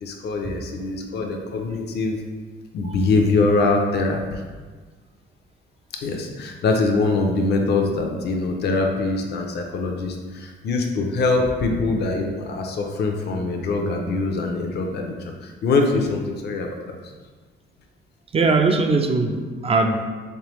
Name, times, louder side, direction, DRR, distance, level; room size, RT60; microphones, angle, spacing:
voice 1, 0.0-2.2 2.7-4.4 6.0-17.0, left 3 dB, 55° left, 2 dB, 0.5 m, -23 dB
voice 2, 18.3-20.1, right 3 dB, 30° right, 4 dB, 0.3 m, -21 dB
3.3 x 3.3 x 3.0 m, 1.4 s
cardioid pair, 90°, 20 cm